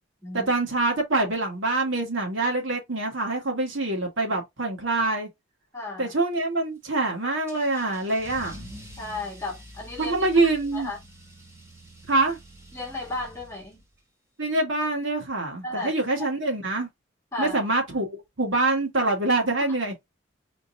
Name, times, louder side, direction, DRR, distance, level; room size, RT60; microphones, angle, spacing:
voice 1, 0.3-5.3 6.0-8.6 10.0-10.9 12.1-12.4 14.4-16.9 17.4-19.9, right 2 dB, 75° right, 2.0 m, -25 dB
voice 2, 5.7-6.1 9.0-10.1 10.7-11.0 12.7-13.8 15.6-15.9 17.3-17.6, left 2 dB, 15° left, 2.0 m, -34 dB
Car / Engine starting / Accelerating revving vroom, 7.5-14.0, equal, 15° right, 1.6 m, -46 dB
4.4 x 4.3 x 2.8 m
head